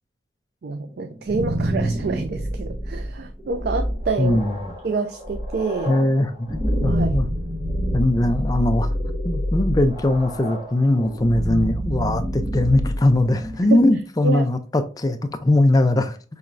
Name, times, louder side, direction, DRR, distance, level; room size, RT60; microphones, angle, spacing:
voice 1, 0.6-4.4 4.8-5.9 6.9-7.2 13.7-13.8 14.2-14.5, right 4 dB, 55° right, 0.4 m, -27 dB
sound 1, 1.0-13.9, equal, 25° right, 0.8 m, -27 dB
voice 2, 4.2-4.7 5.9-7.3 7.9-8.9 9.2-16.2, left 1 dB, 20° left, 0.4 m, -20 dB
5.6 x 3.0 x 2.5 m
head